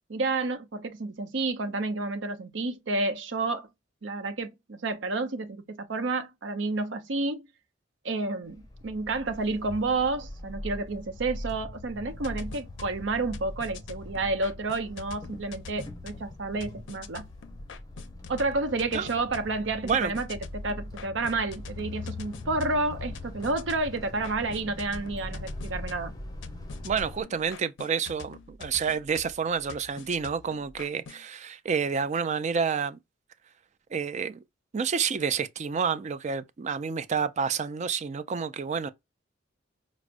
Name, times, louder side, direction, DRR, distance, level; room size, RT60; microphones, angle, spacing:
voice 1, 0.1-3.7 4.0-7.5 8.0-17.3 18.3-26.1, right 3 dB, 70° right, 0.7 m, -30 dB
sound 1, 8.4-27.2, left 1 dB, 20° left, 0.7 m, -41 dB
sound 2, 12.1-31.2, left 5 dB, 70° left, 0.5 m, -47 dB
voice 2, 19.8-20.1 26.8-33.0 33.9-34.4 34.7-38.9, right 6 dB, 40° right, 0.4 m, -29 dB
4.7 x 2.0 x 2.5 m
head